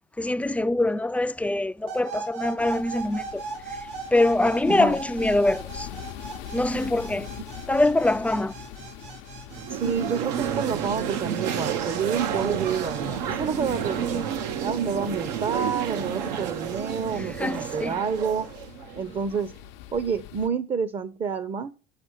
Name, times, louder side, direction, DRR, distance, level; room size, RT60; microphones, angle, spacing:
voice 1, 0.2-3.4 4.1-5.9 6.5-7.3 7.7-8.5 17.4-18.0, left 2 dB, 5° left, 0.3 m, -24 dB
sound 1, 1.9-13.0, right 4 dB, 70° right, 1.4 m, -39 dB
sound 2, 2.6-20.5, left 12 dB, 70° left, 0.7 m, -43 dB
sound 3, 9.5-19.5, right 9 dB, 85° right, 0.8 m, -30 dB
voice 2, 9.7-14.3 14.6-18.5 19.0-19.5 19.9-21.7, right 6 dB, 30° right, 0.6 m, -28 dB
6.6 x 5.8 x 6.3 m
supercardioid pair, 100°, 21 cm